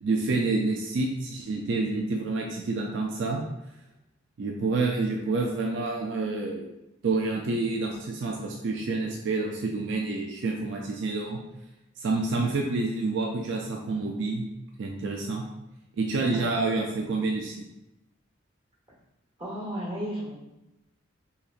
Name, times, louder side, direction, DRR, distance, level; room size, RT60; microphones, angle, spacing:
voice 1, 0.0-3.4 4.4-6.7 7.0-11.4 12.0-14.5 14.8-15.4 16.0-17.5, right 3 dB, 65° right, 0 dB, 0.4 m, -28 dB
voice 2, 19.4-20.4, equal, 30° right, -4 dB, 1.1 m, -34 dB
4.0 x 2.8 x 2.4 m, 0.92 s
head